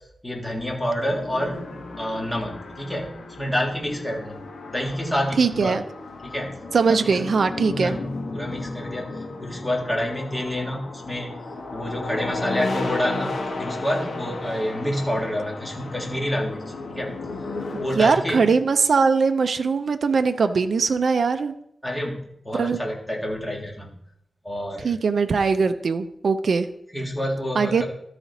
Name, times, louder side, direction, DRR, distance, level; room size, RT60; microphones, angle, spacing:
voice 1, 0.2-5.8 6.2-6.5 6.9-7.2 7.7-11.3 11.7-17.1 17.8-18.5 21.8-23.9 24.4-24.9 26.9-27.8, equal, 10° left, -2 dB, 1.9 m, -28 dB
sound 1, 1.1-18.0, left 2 dB, 85° left, 1.3 m, -33 dB
voice 2, 5.4-5.8 6.7-8.0 17.7-21.5 22.6-22.8 24.8-26.7 27.6-27.8, right 5 dB, 65° right, 8 dB, 0.5 m, -21 dB
12.5 x 4.9 x 4.1 m, 0.73 s
wide cardioid pair, 150°, 0 cm